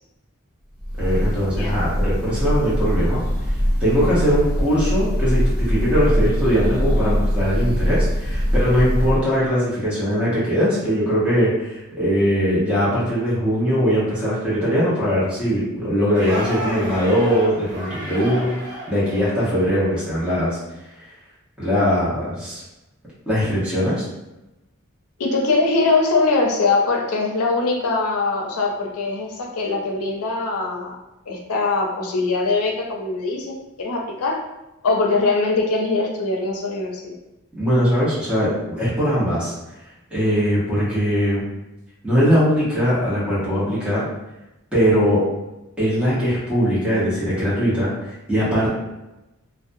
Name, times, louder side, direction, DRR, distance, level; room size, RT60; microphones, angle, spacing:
Breathing / Bird, 0.8-9.3, equal, 35° left, 0.9 m, -22 dB
voice 1, 1.0-3.2 3.8-20.6 21.6-22.6 23.3-24.0 37.6-39.5 40.1-41.4 42.0-44.1 44.7-45.2 45.8-48.7, equal, 5° right, -10 dB, 0.9 m, -20 dB
sound 1, 16.1-19.8, equal, 55° right, 0.9 m, -31 dB
voice 2, 25.2-31.0 31.3-33.5 33.8-34.4 34.8-37.2, left 3 dB, 85° left, 1 dB, 0.5 m, -22 dB
2.5 x 2.2 x 2.6 m, 0.96 s
head